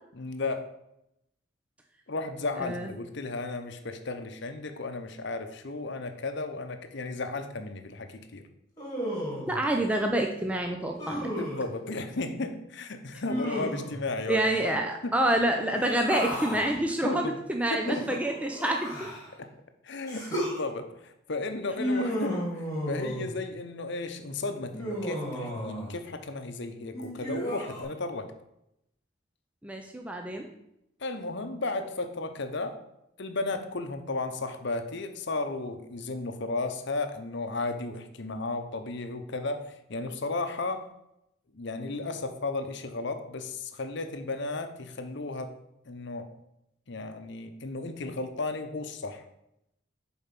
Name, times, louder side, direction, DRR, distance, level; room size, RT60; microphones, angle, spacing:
voice 1, 0.1-0.7 2.1-8.4 11.4-14.7 15.0-15.2 17.0-17.4 17.7-18.2 19.4-19.5 19.8-28.3 31.0-32.8 33.2-40.8 41.5-45.6 45.9-46.3 46.9-49.2, left 3 dB, 55° left, 8 dB, 0.8 m, -34 dB
voice 2, 2.6-2.9 9.5-11.3 14.3-19.1 29.6-30.5, right 1 dB, 5° right, 2 dB, 0.5 m, -27 dB
Human voice, 8.8-9.6 11.0-11.7 13.2-14.0 15.6-16.7 17.8-19.3 20.1-20.6 21.8-23.3 24.7-25.9 26.9-27.8, equal, 15° left, 2.5 m, -33 dB
7.0 x 4.4 x 5.9 m, 0.83 s
head